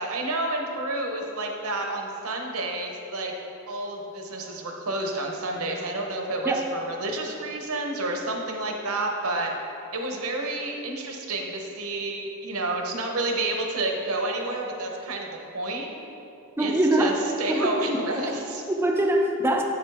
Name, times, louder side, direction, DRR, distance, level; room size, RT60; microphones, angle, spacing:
voice 1, 0.0-3.3 3.7-9.5 9.9-15.9 16.6-18.6, right 2 dB, 75° right, 2 dB, 0.9 m, -30 dB
voice 2, 16.6-17.2 17.5-17.7 18.7-19.6, right 1 dB, 10° right, 1 dB, 0.3 m, -23 dB
7.4 x 6.7 x 3.4 m, 2.8 s
head